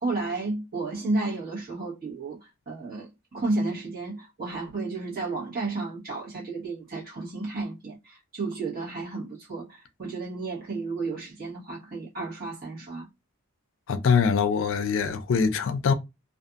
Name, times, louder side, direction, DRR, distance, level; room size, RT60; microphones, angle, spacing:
voice 1, 0.0-13.1, right 3 dB, 45° right, 1.2 m, -32 dB
voice 2, 13.9-15.9, left 6 dB, 60° left, 0.4 m, -23 dB
2.6 x 2.4 x 2.4 m
head